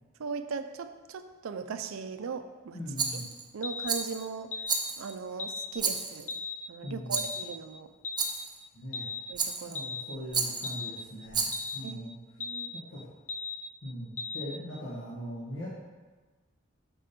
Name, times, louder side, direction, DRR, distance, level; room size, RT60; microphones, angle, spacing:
voice 1, 0.2-2.8 3.5-4.5 5.0-6.4 6.7-7.9 9.3-9.9 11.8-12.7, right 5 dB, 80° right, 9 dB, 0.4 m, -38 dB
voice 2, 2.7-3.2 6.8-7.2 8.7-9.1 9.7-12.2 12.7-13.0 13.8-15.7, equal, 75° left, -8 dB, 1.4 m, -40 dB
Rattle, 3.0-3.5 3.9-4.2 4.7-5.2 5.8-6.3 7.1-7.4 8.2-8.6 9.4-9.8 10.3-10.7 11.3-11.8, right 5 dB, 20° right, 0.6 m, -32 dB
sound 1, 3.6-3.9 4.5-4.8 5.4-5.7 6.3-6.6 7.2-7.4 8.0-8.3 8.9-9.2 9.7-10.0 10.6-10.9 11.5-11.8 12.4-12.7 13.3-13.6 14.2-14.5, left 5 dB, 40° left, 0.7 m, -36 dB
6.1 x 4.2 x 5.1 m, 1.3 s
head